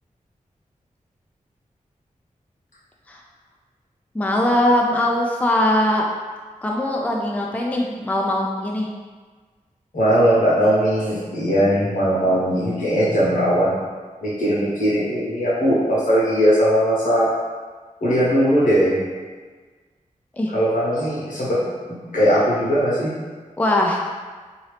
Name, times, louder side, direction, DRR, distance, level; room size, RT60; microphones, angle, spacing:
voice 1, 4.1-6.1 6.6-8.9 20.3-20.5 23.6-24.0, left 1 dB, 10° left, -1 dB, 0.4 m, -21 dB
voice 2, 9.9-13.8 14.2-17.3 18.0-19.0 20.5-21.6 22.1-23.1, equal, 75° left, -7 dB, 1.2 m, -19 dB
2.8 x 2.7 x 3.2 m, 1.4 s
cardioid pair, 55°, 14 cm